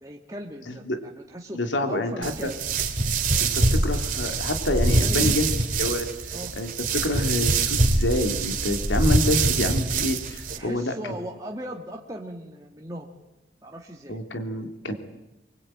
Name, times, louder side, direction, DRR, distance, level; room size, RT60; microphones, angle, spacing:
voice 1, 0.0-2.6 3.6-3.7 4.9-5.5 6.3-6.5 10.6-13.1 13.6-14.2, right 1 dB, 20° right, 0 dB, 1.6 m, -38 dB
voice 2, 0.7-1.0 1.5-2.5 3.4-5.5 5.8-6.1 6.6-10.9 14.1-14.9, left 1 dB, 80° left, 5 dB, 2.8 m, -27 dB
sound 1, 2.2-10.6, right 3 dB, 45° right, 2.4 m, -24 dB
24.0 x 22.5 x 9.0 m, 0.99 s
head